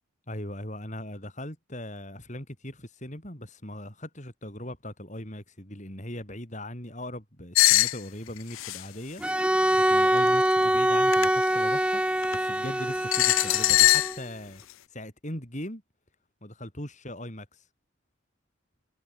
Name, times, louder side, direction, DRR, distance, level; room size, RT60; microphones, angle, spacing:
voice 1, 0.3-9.2 9.9-12.0 12.3-14.6 14.9-15.8 16.4-17.7, left 1 dB, 35° left, 7.9 m, -39 dB
sound 1, 7.5-8.0 8.5-8.8 10.3-10.5 11.1-11.3 12.2-12.4 13.1-14.2, left 16 dB, 80° left, 0.4 m, -21 dB
Bowed string instrument, 9.2-14.2, right 1 dB, 5° right, 1.8 m, -24 dB
head